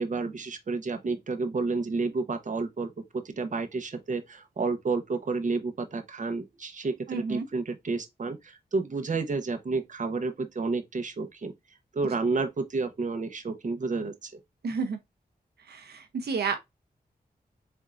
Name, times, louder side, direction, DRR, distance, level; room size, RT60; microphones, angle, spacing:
voice 1, 0.0-11.5 11.9-14.3, right 3 dB, 50° right, 0.9 m, -30 dB
voice 2, 7.1-7.5 14.6-15.0 15.7-16.6, right 5 dB, 85° right, 0.7 m, -30 dB
4.4 x 3.7 x 2.4 m
wide cardioid pair, 85°, 16 cm